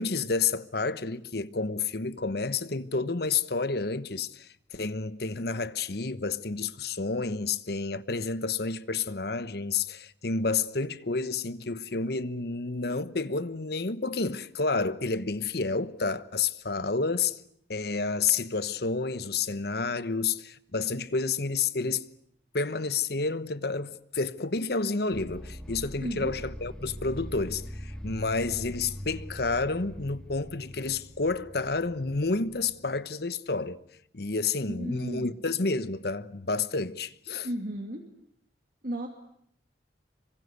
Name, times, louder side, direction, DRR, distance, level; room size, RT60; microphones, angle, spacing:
voice 1, 0.0-17.4 17.7-22.1 22.5-33.8 34.1-37.5, left 4 dB, 60° left, 1.1 m, -30 dB
sound 1, 25.1-33.0, equal, 5° left, 2.1 m, -42 dB
voice 2, 26.0-26.3 34.7-35.3 37.4-38.0 38.8-39.1, equal, 50° right, 2.4 m, -34 dB
26.5 x 24.0 x 8.1 m
head